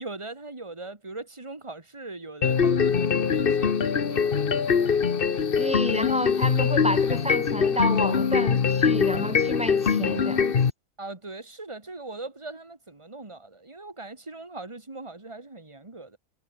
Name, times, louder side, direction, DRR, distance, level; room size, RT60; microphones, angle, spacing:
voice 1, 0.0-4.6 11.0-16.2, right 2 dB, 20° right, 2.3 m, -40 dB
sound 1, 2.4-10.7, left 6 dB, 45° left, 1.3 m, -23 dB
voice 2, 5.6-10.5, left 1 dB, 5° right, 2.9 m, -30 dB
omnidirectional pair, 1.4 m